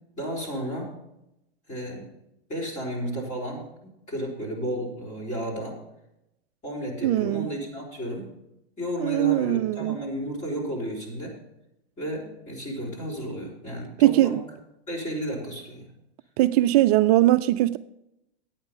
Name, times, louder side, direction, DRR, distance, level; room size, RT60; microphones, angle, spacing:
voice 1, 0.2-0.9 1.7-2.1 2.5-5.8 6.6-8.3 8.8-11.4 12.0-14.4 14.9-15.9, equal, 25° left, 4.6 m, -33 dB
voice 2, 7.0-7.5 9.0-10.0 14.0-14.4 16.4-17.8, right 15 dB, 40° right, 0.4 m, -20 dB
11.0 x 9.1 x 5.4 m
hypercardioid pair, 135°, 31 cm